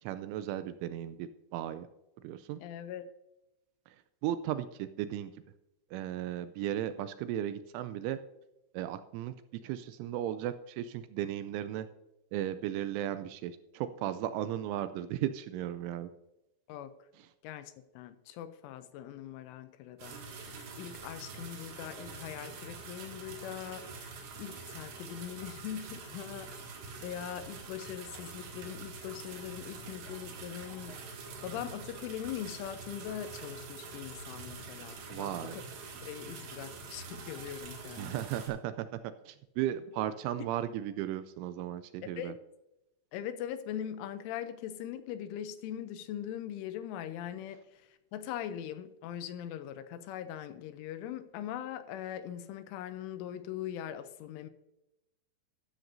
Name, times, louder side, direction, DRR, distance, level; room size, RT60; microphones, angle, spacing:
voice 1, 0.0-1.9 2.2-2.6 3.9-4.0 4.2-5.3 5.9-8.2 8.7-11.9 12.3-16.1 35.1-35.6 38.0-39.0 39.3-42.3, right 11 dB, 85° right, 2.8 m, -36 dB
voice 2, 2.6-3.1 16.7-17.1 17.4-31.0 31.4-35.6 36.0-38.3 42.2-42.4 43.1-54.5, left 10 dB, 85° left, 3.0 m, -41 dB
sound 1, 20.0-38.5, right 4 dB, 65° right, 4.1 m, -46 dB
13.0 x 13.0 x 2.7 m
omnidirectional pair, 5.9 m